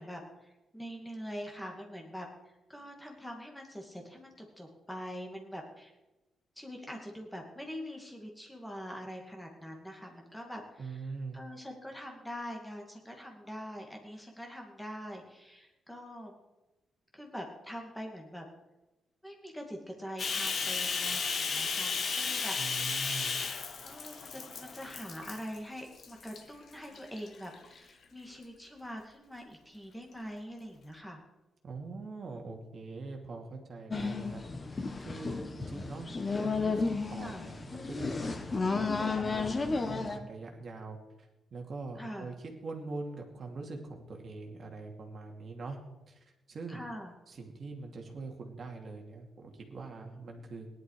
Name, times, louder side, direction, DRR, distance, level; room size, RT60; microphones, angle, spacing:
voice 1, 0.0-5.9 6.6-11.0 11.3-16.3 17.1-18.5 19.2-22.6 23.8-31.2 37.2-37.5 42.0-42.3 46.7-47.1 50.2-50.4, equal, 5° left, 1 dB, 2.4 m, -44 dB
voice 2, 10.8-11.4 22.6-23.4 31.6-34.4 34.7-36.1 36.4-45.8 46.1-46.8 47.3-50.7, right 3 dB, 35° right, 1 dB, 2.5 m, -43 dB
Bathtub (filling or washing), 20.2-25.6 26.0-26.4 26.9-27.8, left 5 dB, 40° left, 1.3 m, -34 dB
sound 1, 33.9-40.2, left 4 dB, 20° left, 1.0 m, -33 dB
17.5 x 11.0 x 4.9 m, 1.0 s
cardioid pair, 165°, 0 cm